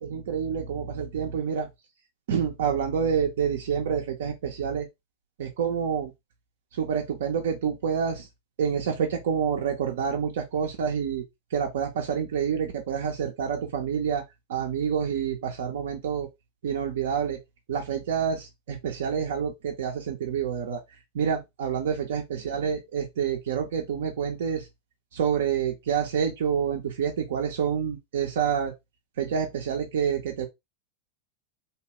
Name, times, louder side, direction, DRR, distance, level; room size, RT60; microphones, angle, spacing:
voice 1, 0.0-1.7 2.3-4.9 5.4-6.1 6.7-8.3 8.6-11.2 11.5-14.2 14.5-16.3 16.6-17.4 17.7-20.8 21.1-24.7 25.1-28.7 29.2-30.5, right 7 dB, 70° right, 0.5 m, -28 dB
2.9 x 2.2 x 2.9 m
hypercardioid pair, 95°, 0 cm